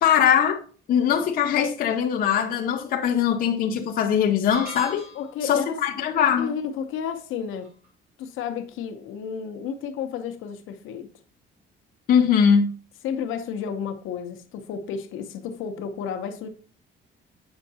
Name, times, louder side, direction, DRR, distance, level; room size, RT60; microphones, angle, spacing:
voice 1, 0.0-0.6 0.9-5.1 5.4-6.5 12.1-12.7, left 8 dB, 45° left, 0.6 m, -21 dB
sound 1, 4.5-5.5, right 2 dB, 45° right, 3.6 m, -37 dB
voice 2, 5.1-5.8 6.3-7.7 8.2-11.1 13.0-16.5, left 7 dB, 80° left, 0.8 m, -32 dB
7.9 x 5.4 x 2.8 m
cardioid pair, 175°, 20 cm